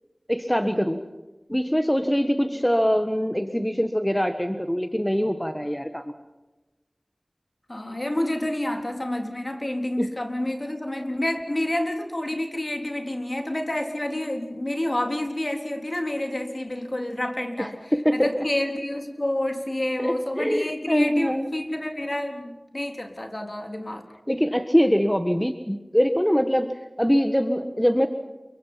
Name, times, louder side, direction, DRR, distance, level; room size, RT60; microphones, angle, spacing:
voice 1, 0.3-1.0 1.5-6.0 10.0-10.1 17.6-18.4 20.0-21.5 24.3-26.7 27.0-28.1, equal, 10° left, 8 dB, 1.5 m, -23 dB
voice 2, 7.7-24.0, left 1 dB, 40° left, 5 dB, 3.8 m, -29 dB
28.5 x 24.0 x 5.8 m, 1.1 s
wide cardioid pair, 45°, 0 cm